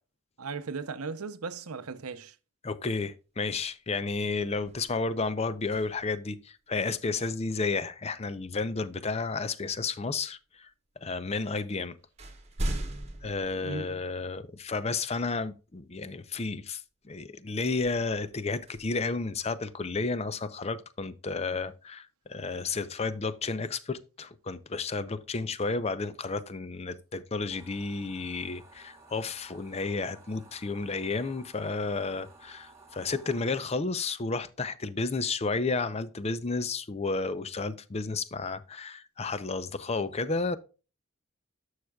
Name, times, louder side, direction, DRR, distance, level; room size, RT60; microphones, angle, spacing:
voice 1, 0.4-2.4 13.6-13.9, right 4 dB, 90° right, 0.7 m, -37 dB
voice 2, 2.6-10.7 11.0-12.0 13.2-40.6, left 3 dB, 30° left, 0.6 m, -32 dB
sound 1, 3.8-3.9 4.2-6.3 8.5-8.6 9.4-10.2 11.1-11.2 11.6-14.4 15.0-15.1 17.7-19.8, right 1 dB, 30° right, 1.2 m, -40 dB
sound 2, 27.5-33.6, right 3 dB, 15° right, 2.2 m, -55 dB
11.5 x 6.5 x 2.3 m
head